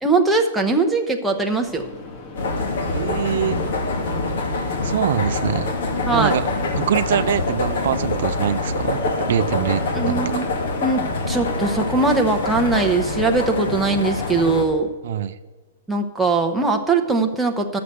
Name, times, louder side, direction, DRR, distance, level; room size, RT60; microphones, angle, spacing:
voice 1, 0.0-1.9 6.1-6.3 9.9-10.5 10.8-14.9 15.9-17.8, right 3 dB, 5° right, 1 dB, 0.9 m, -20 dB
sound 1, 1.6-12.4, left 3 dB, 35° left, 1.7 m, -38 dB
sound 2, 2.4-14.6, left 2 dB, 75° left, 2.1 m, -25 dB
voice 2, 2.9-3.6 4.8-5.7 6.1-6.5 6.8-10.2 15.0-15.4, right 9 dB, 65° right, 11 dB, 0.5 m, -24 dB
11.5 x 6.8 x 6.6 m, 1.3 s
hypercardioid pair, 150°, 0 cm